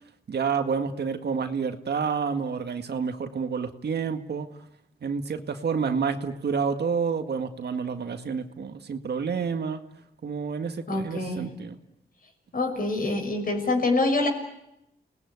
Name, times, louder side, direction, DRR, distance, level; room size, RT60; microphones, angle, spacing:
voice 1, 0.3-4.5 5.0-9.8 10.2-11.8, right 6 dB, 70° right, 7 dB, 2.0 m, -29 dB
voice 2, 10.9-11.5 12.5-14.3, left 2 dB, 55° left, 4 dB, 6.1 m, -25 dB
30.0 x 19.5 x 9.7 m, 0.86 s
cardioid pair, 85°, 18 cm